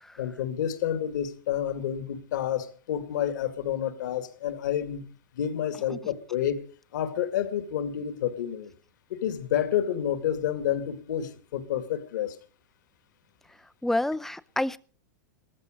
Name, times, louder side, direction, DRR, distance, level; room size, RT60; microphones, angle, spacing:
voice 1, 0.2-5.1 5.3-6.6 6.9-8.7 9.1-12.4, left 10 dB, 70° left, 2.2 m, -29 dB
voice 2, 13.8-14.8, left 1 dB, 5° left, 0.6 m, -28 dB
17.0 x 14.5 x 5.2 m
hypercardioid pair, 115°, 10 cm